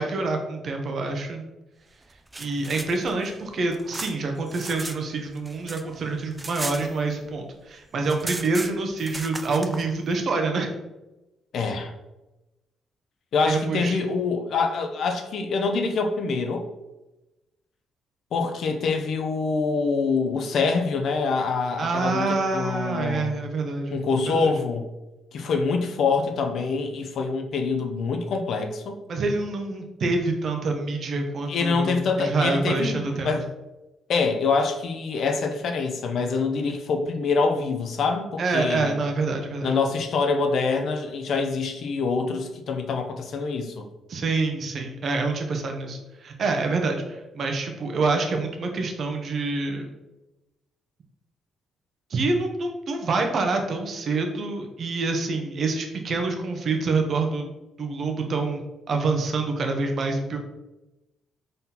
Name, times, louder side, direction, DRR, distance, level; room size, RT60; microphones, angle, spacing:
voice 1, 0.0-1.5 2.4-10.7 13.4-14.0 21.8-24.0 24.3-24.5 29.1-33.3 38.4-39.7 44.1-49.9 52.1-57.5 57.8-58.6 58.9-60.4, right 3 dB, 55° right, 3 dB, 0.7 m, -26 dB
sound 1, 2.1-5.0 5.3-7.4 7.7-7.8 8.0-9.8, right 2 dB, 15° right, 0.3 m, -36 dB
voice 2, 11.5-11.9 13.3-16.6 18.3-23.4 23.9-24.9 25.3-29.0 31.5-33.5 34.1-39.0 39.6-43.9, left 4 dB, 65° left, 5 dB, 0.5 m, -25 dB
3.8 x 3.8 x 2.8 m, 1.0 s
cardioid pair, 90°, 0 cm